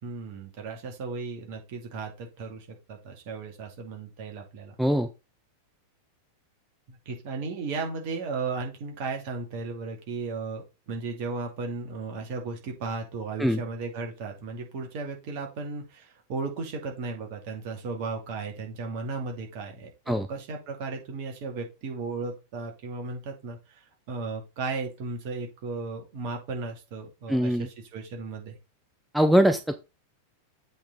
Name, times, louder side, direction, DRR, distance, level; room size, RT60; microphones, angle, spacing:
voice 1, 0.0-4.7 6.9-28.5, right 4 dB, 45° right, 2 dB, 2.4 m, -35 dB
voice 2, 4.8-5.1 13.4-13.6 20.1-20.3 27.3-27.7 29.1-29.8, equal, ahead, 8 dB, 0.6 m, -22 dB
7.8 x 4.2 x 4.0 m, 0.28 s
figure-of-eight pair, 90°, 0 cm